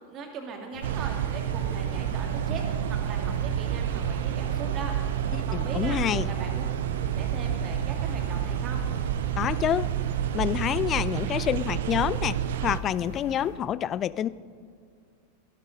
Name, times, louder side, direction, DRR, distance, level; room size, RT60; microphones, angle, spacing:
voice 1, 0.1-5.0 5.4-6.0 6.2-6.6 7.0-8.9, right 4 dB, 30° right, 3 dB, 2.4 m, -39 dB
sound 1, 0.7-13.5, left 1 dB, 80° right, 3.6 m, -43 dB
sound 2, 0.8-12.8, right 10 dB, 55° right, 0.6 m, -29 dB
voice 2, 5.5-6.3 9.4-9.9 10.3-12.3 12.6-14.3, left 10 dB, 30° left, 18 dB, 0.4 m, -27 dB
15.0 x 11.5 x 5.2 m, 2.2 s
figure-of-eight pair, 90°, 0 cm